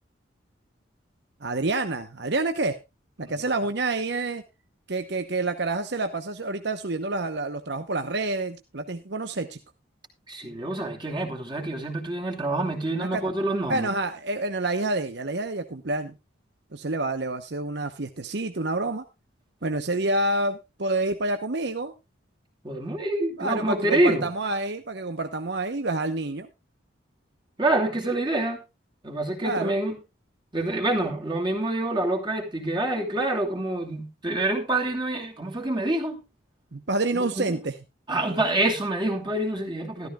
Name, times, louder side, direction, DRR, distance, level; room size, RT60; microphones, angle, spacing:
voice 1, 1.4-2.8 3.2-4.4 4.9-9.6 12.9-13.2 13.7-16.2 16.7-19.0 19.6-21.9 23.4-26.5 29.4-29.8 36.7-37.8, right 2 dB, 60° right, 0.9 m, -28 dB
voice 2, 10.3-13.9 22.6-24.3 27.6-28.6 29.0-30.0 30.5-36.2 37.1-37.6 38.1-40.1, right 1 dB, 25° right, 2.7 m, -26 dB
14.0 x 13.5 x 2.4 m
head